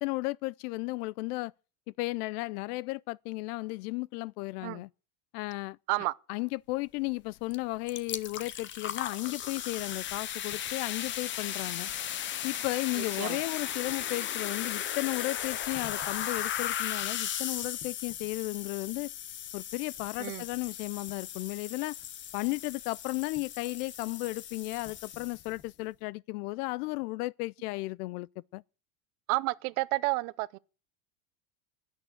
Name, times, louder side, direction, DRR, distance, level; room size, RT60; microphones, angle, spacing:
voice 1, 0.0-1.5 1.9-4.9 5.3-5.8 6.3-11.9 12.4-19.1 19.5-22.0 22.3-28.6, left 22 dB, 70° left, 0.5 m, -34 dB
sound 1, 7.5-7.6 7.9-25.6, left 10 dB, 25° left, 0.6 m, -36 dB
voice 2, 29.3-30.6, right 23 dB, 65° right, 0.8 m, -30 dB
12.0 x 6.4 x 9.2 m
supercardioid pair, 145°, 48 cm